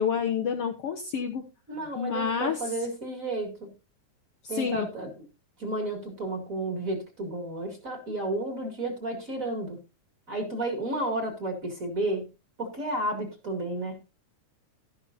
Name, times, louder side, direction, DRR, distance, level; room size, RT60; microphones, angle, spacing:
voice 1, 0.0-1.4 2.0-2.7 4.4-4.9, left 7 dB, 65° left, 3 dB, 1.6 m, -29 dB
voice 2, 1.7-3.7 4.5-5.2 5.6-9.8 10.3-12.3 12.6-14.0, right 2 dB, 30° right, 4 dB, 2.4 m, -32 dB
12.5 x 11.5 x 2.6 m, 0.27 s
omnidirectional pair, 3.5 m